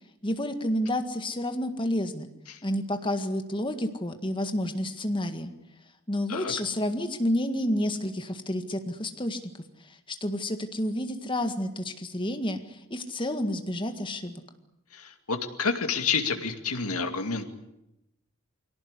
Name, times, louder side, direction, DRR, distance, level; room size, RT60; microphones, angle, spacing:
voice 1, 0.2-2.3 2.6-5.5 6.1-9.4 10.2-14.4, left 1 dB, 20° left, 7 dB, 1.8 m, -30 dB
voice 2, 14.9-17.5, left 5 dB, 85° left, 5 dB, 2.5 m, -29 dB
23.5 x 18.0 x 9.8 m, 0.87 s
head